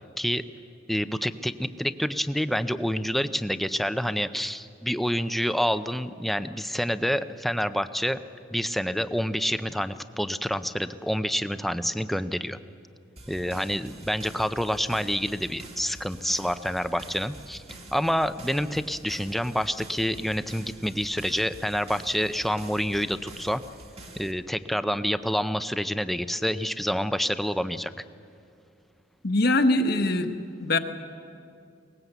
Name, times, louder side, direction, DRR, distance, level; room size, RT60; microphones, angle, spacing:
voice 1, 0.9-8.2 8.5-12.6 13.3-17.6 17.9-23.6 24.2-27.9, equal, ahead, 11 dB, 0.5 m, -28 dB
sound 1, 13.2-24.3, right 2 dB, 35° right, 2.0 m, -46 dB
voice 2, 29.2-30.8, left 2 dB, 60° left, 7 dB, 1.2 m, -23 dB
22.0 x 19.5 x 8.1 m, 2.4 s
head